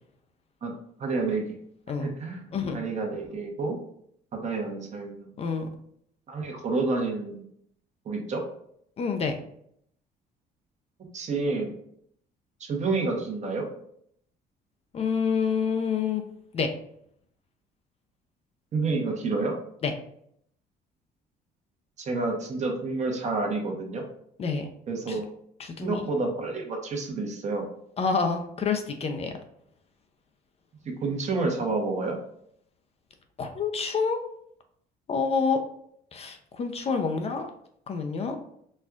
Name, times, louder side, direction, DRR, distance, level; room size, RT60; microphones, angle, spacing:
voice 1, 1.0-1.6 2.0-2.4 2.7-3.8 4.3-5.3 6.3-7.4 8.0-8.4 11.1-11.7 12.6-13.7 18.7-19.5 22.0-24.0 24.9-25.2 25.8-27.6 30.8-32.2, right 3 dB, 45° right, 1 dB, 0.9 m, -29 dB
voice 2, 2.5-2.8 5.4-5.7 9.0-9.4 14.9-16.2 16.5-16.7 19.8-19.9 24.4-24.7 25.1-25.2 25.6-26.1 28.0-29.3 33.4-34.2 35.1-35.6 36.1-37.5 37.9-38.4, left 5 dB, 35° left, 6 dB, 0.4 m, -27 dB
4.3 x 2.3 x 2.3 m, 0.68 s
cardioid pair, 110°, 17 cm